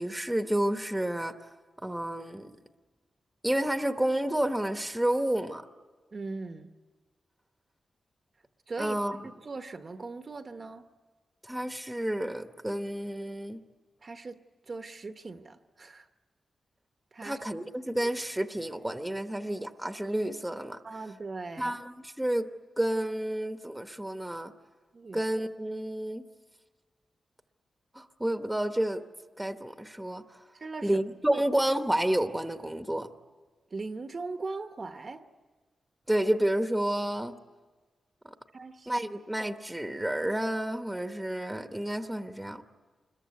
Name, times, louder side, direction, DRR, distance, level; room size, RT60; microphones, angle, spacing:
voice 1, 0.0-1.3 1.8-2.6 3.4-5.6 8.8-9.3 11.4-13.6 17.2-20.8 21.6-22.5 22.8-24.5 25.1-26.3 27.9-29.0 29.4-30.2 30.8-33.1 36.1-37.3 38.2-38.3 38.9-42.6, right 1 dB, 5° right, 7 dB, 0.9 m, -30 dB
voice 2, 6.1-6.7 8.7-9.0 9.2-10.8 14.0-14.3 14.7-16.1 17.1-17.4 20.8-21.8 24.9-25.2 30.6-31.0 31.3-31.4 33.7-35.2 38.5-38.9, right 3 dB, 40° right, 8 dB, 0.9 m, -39 dB
26.5 x 21.5 x 9.5 m, 1.4 s
wide cardioid pair, 145°, 0 cm